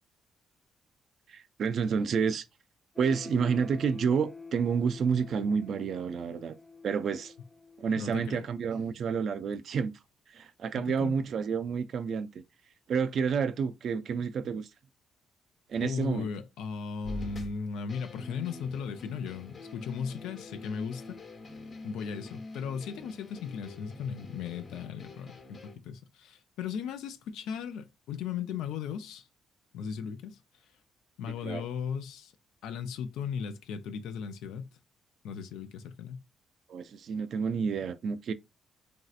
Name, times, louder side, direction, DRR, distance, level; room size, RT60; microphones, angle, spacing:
voice 1, 1.3-2.4 3.0-6.6 6.8-7.3 7.8-9.9 10.3-12.4 12.9-14.7 15.7-16.3 31.4-31.7 36.7-38.3, right 6 dB, 60° right, 0.3 m, -29 dB
sound 1, 3.0-8.8, left 4 dB, 10° left, 0.7 m, -48 dB
voice 2, 8.0-8.5 10.8-11.1 15.8-21.2 21.8-29.3 29.7-30.4 31.2-32.3 32.6-34.7 35.2-36.2, left 6 dB, 90° left, 0.4 m, -37 dB
sound 2, 17.0-25.8, left 2 dB, 45° left, 0.9 m, -45 dB
3.1 x 2.6 x 2.4 m
cardioid pair, 90°, 0 cm